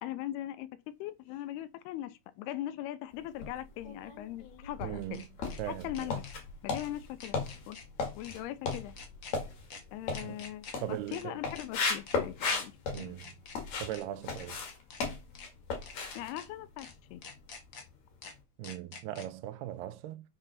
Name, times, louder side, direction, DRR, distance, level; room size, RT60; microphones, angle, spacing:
voice 1, 0.0-0.7 1.0-5.2 5.6-6.3 6.6-7.4 7.7-7.8 8.1-8.9 9.9-13.2 16.1-17.2, left 13 dB, 85° left, 2.6 m, -40 dB
sound 1, 1.3-1.4 3.8-5.6 5.9-6.4 6.7-6.9 7.2-7.8 8.2-8.4 8.7-9.3 9.7-9.8 10.1-10.7 11.1-11.2 11.5-12.2 12.5-12.6 12.9-13.6 13.9-14.0 14.3-15.0 15.3-15.5 15.8-16.5 16.8-16.9 17.2-17.8 18.2-18.3 18.6-19.3, left 5 dB, 70° left, 1.1 m, -48 dB
sound 2, 3.3-4.0 4.5-14.0 14.2-17.4 17.6-17.9 18.3-18.4, left 4 dB, 50° left, 2.9 m, -36 dB
voice 2, 4.8-5.3 5.6-6.1 10.2-10.4 10.8-11.4 12.9-13.3 13.8-14.6 18.6-20.2, right 13 dB, 80° right, 2.8 m, -39 dB
6.7 x 6.0 x 5.6 m
omnidirectional pair, 4.7 m